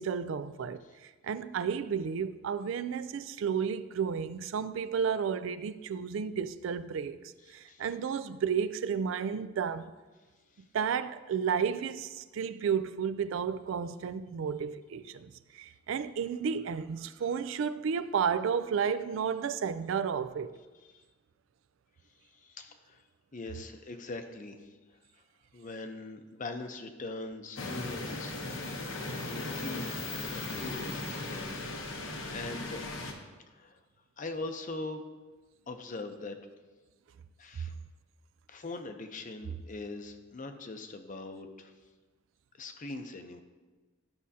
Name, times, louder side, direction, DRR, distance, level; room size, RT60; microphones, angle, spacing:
voice 1, 0.0-7.2 7.5-9.9 10.7-20.5, right 7 dB, 70° right, 0.3 m, -32 dB
voice 2, 7.5-7.9 10.5-10.6 22.3-23.0 23.3-24.7 25.5-28.8 29.3-31.6 32.3-32.9 33.5-33.8 34.2-35.0 35.7-36.4 37.4-37.7 38.5-41.7 42.6-43.4, left 2 dB, 40° left, 0.6 m, -42 dB
sound 1, 27.6-33.1, left 2 dB, 75° left, 1.0 m, -37 dB
12.0 x 6.2 x 2.8 m
head